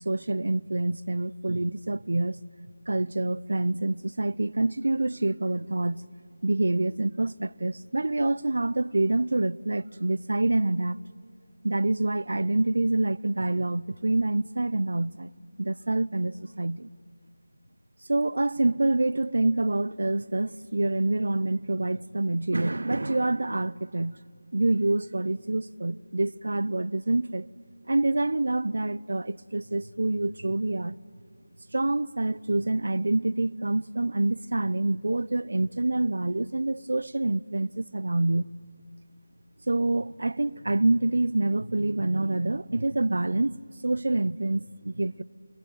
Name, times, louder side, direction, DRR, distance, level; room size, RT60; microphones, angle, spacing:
voice 1, 0.1-2.4 2.9-6.0 6.4-11.0 11.6-15.3 15.6-16.9 18.1-24.2 24.5-27.5 27.9-31.0 31.7-38.5 39.7-45.2, right 2 dB, 70° right, 0.6 m, -26 dB
27.0 x 20.0 x 9.1 m
figure-of-eight pair, 165°, 0 cm